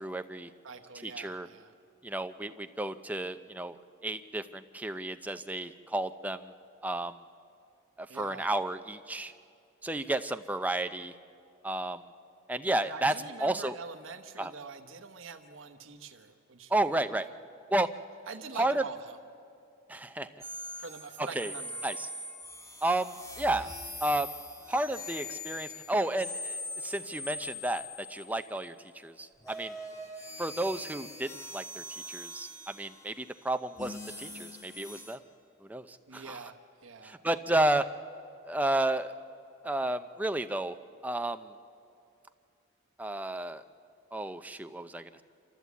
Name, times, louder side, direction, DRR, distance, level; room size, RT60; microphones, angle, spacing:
voice 1, 0.0-0.5 1.0-1.5 2.0-3.8 4.0-6.5 6.8-7.2 8.0-9.3 9.8-11.1 11.6-12.1 12.5-13.1 13.4-13.7 14.4-14.5 16.7-17.3 17.7-17.9 18.6-18.8 19.9-20.3 21.2-21.5 21.8-22.1 22.8-23.7 24.0-24.3 24.7-28.8 29.0-29.7 30.4-35.2 35.6-36.4 37.0-37.9 38.5-39.1 39.6-40.8 41.0-41.5 43.0-43.6 44.1-45.2, right 1 dB, 10° right, 9 dB, 0.5 m, -32 dB
voice 2, 0.6-1.7 8.1-8.5 12.7-16.7 17.1-17.3 18.3-19.2 20.8-21.8 36.1-37.2, right 4 dB, 75° right, 4 dB, 1.0 m, -45 dB
sound 1, 20.4-28.7 29.4-35.1, left 1 dB, 15° left, 1.6 m, -42 dB
27.5 x 13.5 x 8.2 m, 2.5 s
head